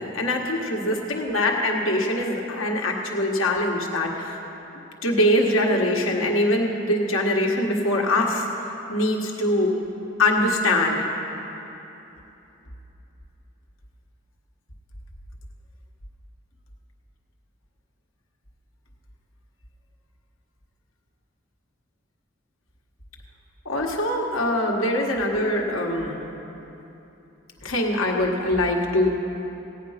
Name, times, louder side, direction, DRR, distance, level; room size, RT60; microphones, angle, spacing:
voice 1, 0.0-4.4 5.0-8.5 8.9-9.7 10.2-11.1 23.7-26.2 27.6-29.1, left 1 dB, 85° left, 0 dB, 1.6 m, -23 dB
16.5 x 9.1 x 5.8 m, 3.0 s
head